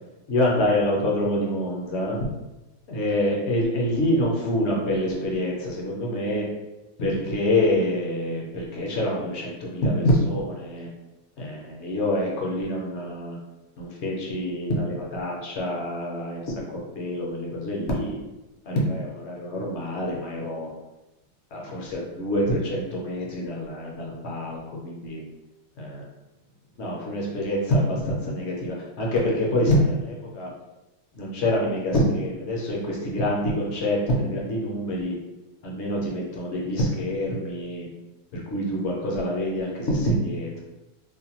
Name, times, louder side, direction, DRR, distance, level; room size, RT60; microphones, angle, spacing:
voice 1, 0.3-2.3 2.9-6.4 7.0-10.9 11.4-13.4 13.8-16.6 17.0-18.2 18.7-20.7 21.5-25.2 25.8-26.0 26.8-30.5 31.2-35.1 35.6-37.9 38.3-40.6, left 1 dB, 60° left, -2 dB, 0.8 m, -26 dB
2.6 x 2.2 x 2.8 m, 1.0 s
omnidirectional pair, 1.5 m